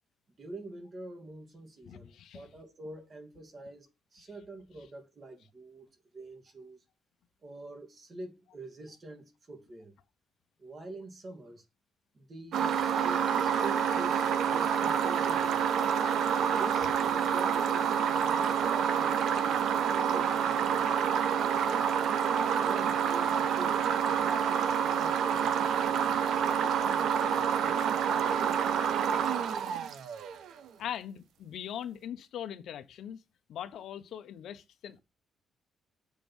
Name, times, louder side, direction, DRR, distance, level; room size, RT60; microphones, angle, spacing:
voice 1, 0.4-6.8 7.4-9.9 10.6-11.6 12.1-15.7 16.6-22.2 22.6-26.3 26.6-29.3, right 2 dB, 30° right, 2.7 m, -46 dB
voice 2, 1.8-2.5 24.7-24.8 30.8-33.2 33.5-35.0, left 10 dB, 70° left, 0.9 m, -41 dB
sound 1, 12.5-30.5, right 8 dB, 70° right, 1.1 m, -28 dB
7.3 x 4.6 x 6.2 m
cardioid pair, 145°, 0 cm